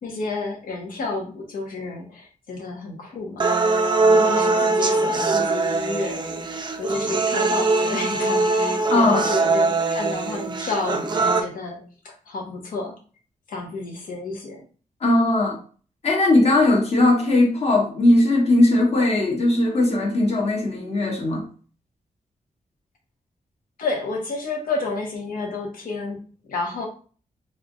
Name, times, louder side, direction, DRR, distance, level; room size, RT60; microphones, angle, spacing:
voice 1, 0.0-3.5 4.1-6.3 6.8-12.9 13.5-14.6 23.8-26.2 26.5-26.9, left 3 dB, 90° left, 1.2 m, -30 dB
sound 1, 3.4-11.4, right 3 dB, 35° right, 0.5 m, -21 dB
voice 2, 8.9-9.3 15.0-15.6 16.0-21.5, left 2 dB, 50° left, 1.2 m, -19 dB
3.6 x 3.3 x 2.5 m
wide cardioid pair, 165°, 14 cm